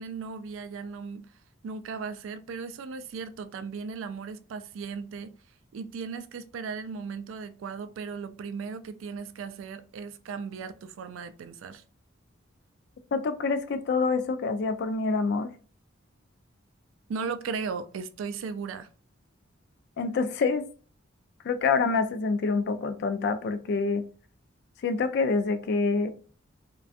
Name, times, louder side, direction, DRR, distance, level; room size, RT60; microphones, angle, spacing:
voice 1, 0.0-1.3 1.6-5.3 5.7-11.8 17.1-18.9, right 5 dB, 75° right, 0.3 m, -37 dB
voice 2, 13.1-15.5 20.0-20.6 21.4-24.0 24.8-26.1, left 4 dB, 55° left, 0.3 m, -26 dB
2.5 x 2.2 x 2.4 m
head